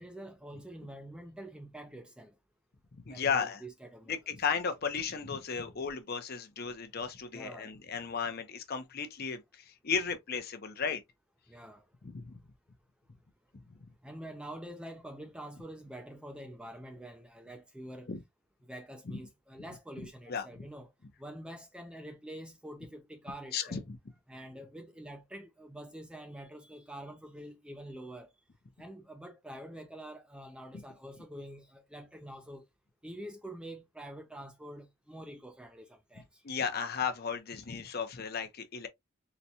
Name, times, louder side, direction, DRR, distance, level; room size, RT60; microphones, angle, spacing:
voice 1, 0.0-2.3 3.1-4.2 7.3-7.7 11.5-11.9 14.0-18.1 18.6-20.9 21.2-23.9 24.3-28.3 28.8-32.6 33.0-36.4, right 1 dB, 5° right, 0.3 m, -46 dB
voice 2, 3.1-3.6 4.1-11.0 12.0-12.4 18.1-18.2 19.1-19.2 20.0-20.5 23.5-24.0 36.4-38.9, left 6 dB, 45° left, 0.6 m, -35 dB
3.9 x 2.2 x 2.7 m
head